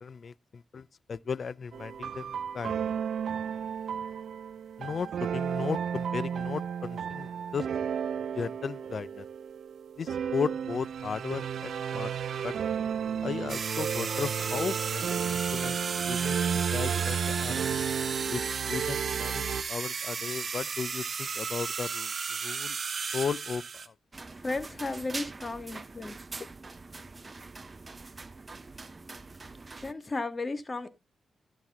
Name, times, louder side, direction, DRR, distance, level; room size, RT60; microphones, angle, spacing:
voice 1, 0.0-2.9 4.8-7.7 8.3-9.2 10.0-12.1 12.4-12.5 13.2-15.8 16.1-16.4 16.7-17.6 18.3-18.4 18.7-22.8 23.1-23.9, left 6 dB, 60° left, 0.5 m, -35 dB
sound 1, 1.7-19.6, right 7 dB, 80° right, 0.5 m, -33 dB
sound 2, 13.5-23.9, right 5 dB, 60° right, 1.3 m, -34 dB
sound 3, 24.1-29.9, right 3 dB, 35° right, 0.8 m, -44 dB
voice 2, 24.4-26.2 29.8-30.9, left 3 dB, 35° left, 1.7 m, -34 dB
12.5 x 6.1 x 3.6 m
cardioid pair, 60°, 0 cm